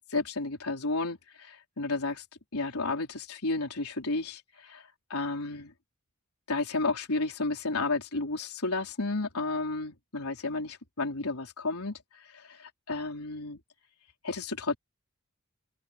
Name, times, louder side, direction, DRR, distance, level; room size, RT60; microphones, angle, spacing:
voice 1, 0.1-2.2 2.5-5.7 6.5-13.6 14.2-14.8, left 3 dB, 90° left, 4.0 m, -32 dB
open air
head